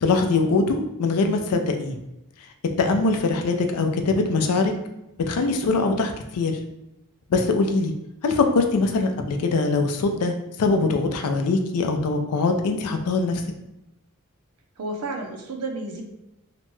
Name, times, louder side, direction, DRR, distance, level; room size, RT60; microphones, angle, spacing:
voice 1, 0.0-2.0 2.8-4.7 5.3-6.6 7.3-7.9 8.2-13.4, left 3 dB, 85° left, 5 dB, 0.4 m, -22 dB
voice 2, 2.8-3.1 14.8-16.0, right 2 dB, 85° right, 2 dB, 0.5 m, -32 dB
2.9 x 2.2 x 3.0 m, 0.89 s
head